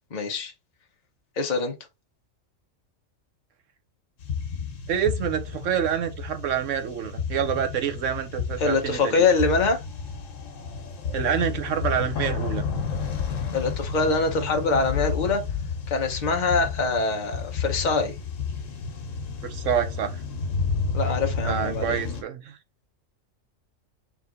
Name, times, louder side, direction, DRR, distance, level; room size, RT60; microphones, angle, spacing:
voice 1, 0.1-0.5 1.4-1.7 8.6-9.8 13.5-15.4 15.9-18.1 20.9-22.0, left 4 dB, 40° left, 0.9 m, -24 dB
sound 1, 4.2-22.2, left 5 dB, 75° left, 1.3 m, -31 dB
voice 2, 4.9-9.3 11.1-12.7 19.4-20.2 21.4-22.6, right 8 dB, 75° right, 1.2 m, -27 dB
3.6 x 2.9 x 3.7 m
omnidirectional pair, 1.3 m